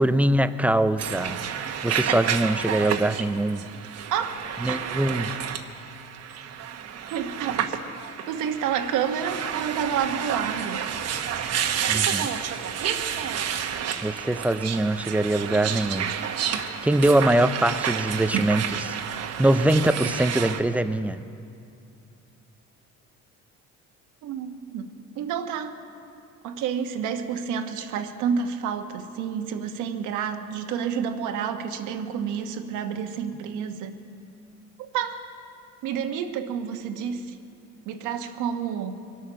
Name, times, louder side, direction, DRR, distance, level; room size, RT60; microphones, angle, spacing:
voice 1, 0.0-3.6 4.6-5.3 11.9-12.3 14.0-16.1 16.5-21.2, right 1 dB, 5° right, 12 dB, 0.4 m, -23 dB
sound 1, 1.0-20.6, right 8 dB, 55° right, 1.1 m, -30 dB
voice 2, 4.1-4.8 7.1-7.8 8.3-10.8 24.2-24.9 25.1-25.8 26.4-33.9 34.8-35.2 35.8-37.3 37.9-39.0, right 7 dB, 75° right, 6 dB, 1.2 m, -29 dB
24.0 x 8.6 x 6.2 m, 2.6 s
cardioid pair, 120°, 30 cm